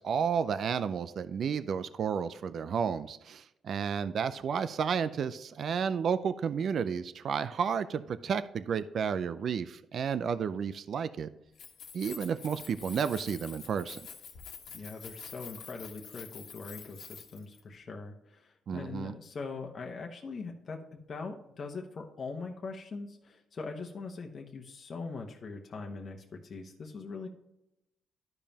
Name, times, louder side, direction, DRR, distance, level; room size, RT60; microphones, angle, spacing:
voice 1, 0.0-11.3 11.9-14.0 18.7-19.1, right 7 dB, 60° right, 13 dB, 0.4 m, -32 dB
Keys jangling, 11.5-17.6, left 6 dB, 70° left, 1.4 m, -47 dB
voice 2, 14.7-20.8 21.1-27.3, left 4 dB, 45° left, 1 dB, 1.0 m, -41 dB
12.0 x 5.1 x 2.9 m, 0.85 s
cardioid pair, 90°, 0 cm